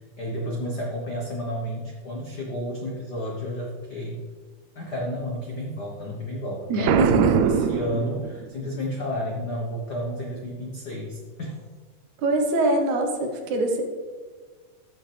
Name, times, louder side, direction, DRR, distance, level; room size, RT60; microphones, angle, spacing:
voice 1, 0.2-4.2 4.7-7.0 7.4-11.6, equal, 80° left, -1 dB, 0.9 m, -31 dB
voice 2, 6.7-7.3 12.2-13.8, right 2 dB, 70° right, 3 dB, 2.5 m, -23 dB
Boom, 6.8-8.7, right 7 dB, 85° right, 1.5 m, -22 dB
14.5 x 7.3 x 3.4 m, 1.5 s
omnidirectional pair, 3.7 m